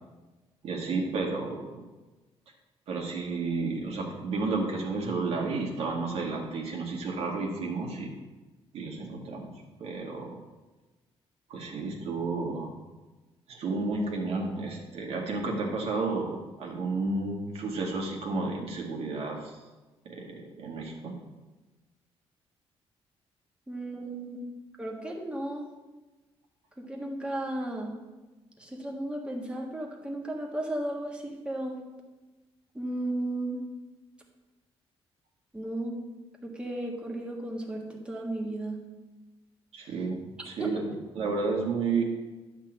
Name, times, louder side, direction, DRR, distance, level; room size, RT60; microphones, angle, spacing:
voice 1, 0.6-1.8 2.9-8.1 8.7-9.5 9.8-10.4 11.5-12.7 13.5-19.6 20.1-21.1 23.9-24.3 39.7-40.9 41.1-42.0, right 3 dB, 75° right, -1 dB, 2.0 m, -32 dB
voice 2, 23.7-24.4 24.8-25.7 26.8-28.0 28.6-31.9 32.7-33.6 35.5-36.0 36.4-38.8 40.6-40.8, right 1 dB, 10° right, 0 dB, 1.5 m, -34 dB
11.0 x 3.8 x 7.5 m, 1.2 s
cardioid pair, 145°, 11 cm